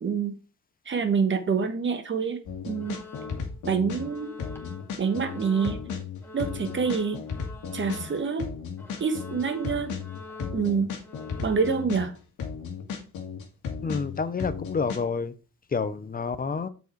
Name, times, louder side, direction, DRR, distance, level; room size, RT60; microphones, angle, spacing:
voice 1, 0.0-0.4 0.8-3.0 3.6-4.3 5.0-5.8 6.3-7.2 7.7-8.5 9.0-9.9 10.5-10.9 11.4-12.1, right 5 dB, 40° right, 1.3 m, -26 dB
sound 1, 2.5-4.1 4.4-8.1 8.4-12.1 12.4-15.0, left 6 dB, 80° left, 1.9 m, -35 dB
sound 2, 2.7-3.6 3.9-8.5 8.8-11.8, left 3 dB, 10° left, 2.0 m, -46 dB
voice 2, 13.8-15.3 15.7-16.7, left 5 dB, 30° left, 0.7 m, -29 dB
6.7 x 5.0 x 4.6 m
cardioid pair, 90°, 30 cm